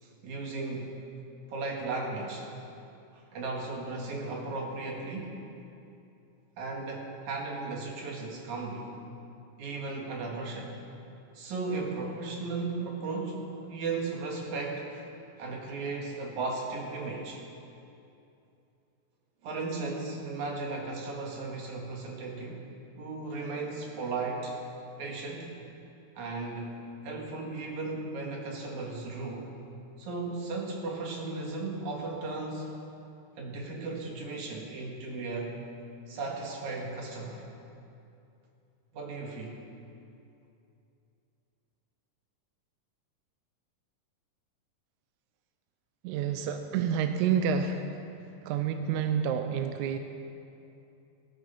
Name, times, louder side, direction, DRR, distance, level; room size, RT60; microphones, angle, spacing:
voice 1, 0.0-0.9 1.5-2.5 3.1-5.4 6.6-9.0 9.6-10.8 11.3-15.1 15.4-17.4 19.4-22.6 23.0-24.6 25.0-25.5 26.2-29.5 30.0-32.8 33.4-35.6 36.1-37.5 38.9-39.6, right 3 dB, 60° right, -1 dB, 3.1 m, -36 dB
voice 2, 46.0-48.0 48.4-50.0, right 7 dB, 80° right, 7 dB, 1.8 m, -29 dB
16.0 x 13.5 x 5.6 m, 2.7 s
omnidirectional pair, 4.0 m